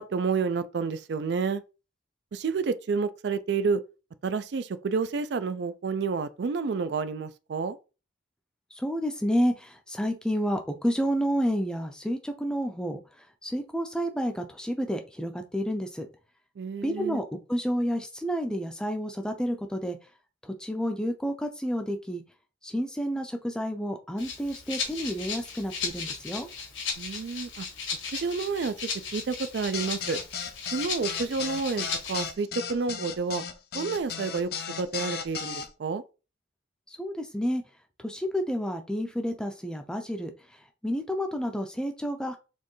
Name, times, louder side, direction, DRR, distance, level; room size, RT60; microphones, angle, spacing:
voice 1, 0.0-1.6 2.3-3.8 4.2-7.8 16.6-17.2 27.0-27.7 28.1-28.7 29.1-30.2 30.7-33.4 33.7-34.5 34.8-36.0, right 5 dB, 60° right, 0.4 m, -29 dB
voice 2, 8.7-13.0 13.4-16.1 16.8-20.0 20.4-22.2 22.6-26.5 37.0-37.6 38.0-40.3 40.8-42.4, equal, 5° left, 0.5 m, -30 dB
Rattle (instrument), 24.2-32.3, left 5 dB, 75° left, 1.4 m, -36 dB
sound 1, 29.7-35.7, left 6 dB, 50° left, 0.6 m, -35 dB
4.4 x 3.2 x 3.1 m
head